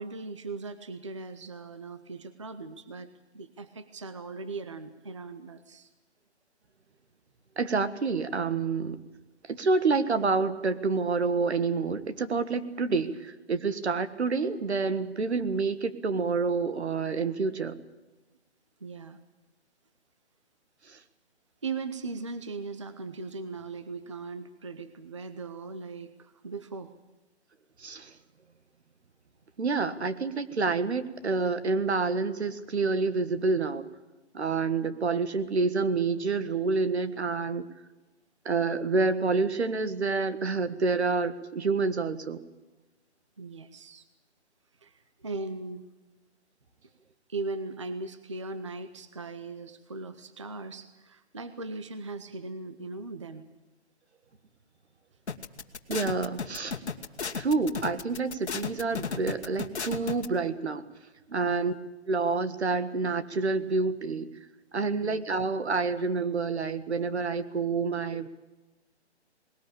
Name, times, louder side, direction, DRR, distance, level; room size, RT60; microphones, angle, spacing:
voice 1, 0.0-5.9 13.0-13.2 18.8-19.2 21.6-26.9 43.4-44.1 44.8-45.8 47.3-53.5 61.4-61.8 65.0-65.2, right 3 dB, 25° right, 11 dB, 0.7 m, -39 dB
voice 2, 7.6-9.0 9.5-17.7 20.9-21.0 27.8-28.1 29.6-33.8 34.3-37.7 38.5-42.4 55.9-56.8 57.3-60.8 61.3-61.7 62.1-64.3 64.7-68.3, right 4 dB, 70° right, 12 dB, 1.8 m, -28 dB
sound 1, 55.3-60.3, left 5 dB, 70° left, 1.8 m, -34 dB
20.0 x 19.0 x 8.6 m, 1.1 s
hypercardioid pair, 170°, 34 cm